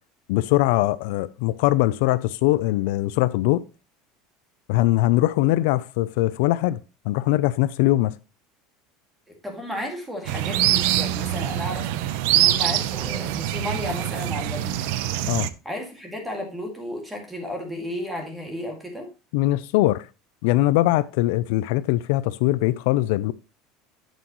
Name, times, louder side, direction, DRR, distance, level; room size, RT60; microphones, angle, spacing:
voice 1, 0.3-3.6 4.7-6.8 7.0-8.1 15.3-15.5 19.3-20.1 20.4-23.3, left 16 dB, 70° left, 0.4 m, -21 dB
voice 2, 9.4-15.0 15.6-19.1, left 1 dB, 5° right, 2.1 m, -33 dB
sound 1, 10.3-15.5, right 13 dB, 65° right, 0.6 m, -24 dB
8.2 x 7.8 x 3.0 m
cardioid pair, 170°, 0 cm